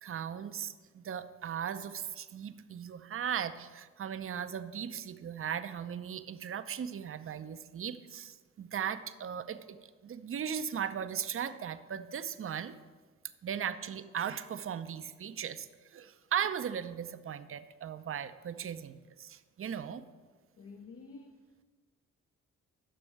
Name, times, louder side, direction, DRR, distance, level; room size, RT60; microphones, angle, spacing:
voice 1, 0.0-12.8 13.4-20.0, right 8 dB, 35° right, 11 dB, 0.6 m, -38 dB
voice 2, 20.6-21.6, left 4 dB, 35° left, 6 dB, 0.6 m, -50 dB
9.9 x 6.9 x 3.4 m, 1.4 s
hypercardioid pair, 45°, 38 cm